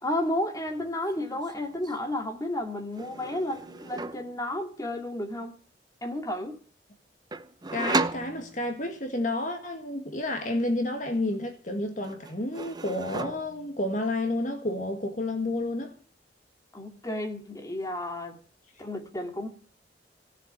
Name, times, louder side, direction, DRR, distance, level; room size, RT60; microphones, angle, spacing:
voice 1, 0.0-5.5 6.0-6.6 16.7-18.4 18.8-19.5, left 1 dB, 20° left, 2.5 m, -32 dB
sound 1, 0.6-0.9 1.2-2.0 2.9-4.3 7.3-8.9 11.1-11.7 12.0-13.7, right 3 dB, 25° right, 0.8 m, -34 dB
voice 2, 7.7-15.9, left 1 dB, 45° left, 1.9 m, -30 dB
17.0 x 7.2 x 9.7 m
head